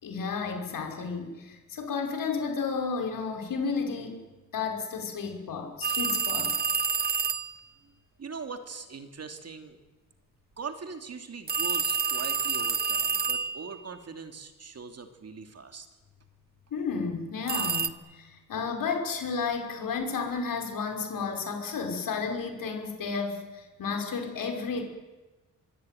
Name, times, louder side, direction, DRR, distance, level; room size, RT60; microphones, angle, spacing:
voice 1, 0.0-4.2 4.5-6.5 16.7-24.8, left 5 dB, 75° left, 4 dB, 5.7 m, -32 dB
sound 1, 5.8-7.5 11.5-13.8 17.5-17.9, right 5 dB, 30° right, 1.1 m, -28 dB
voice 2, 8.2-9.8 10.6-15.9, right 5 dB, 50° right, 7 dB, 2.9 m, -41 dB
24.5 x 23.0 x 9.3 m, 1.2 s
wide cardioid pair, 115°, 33 cm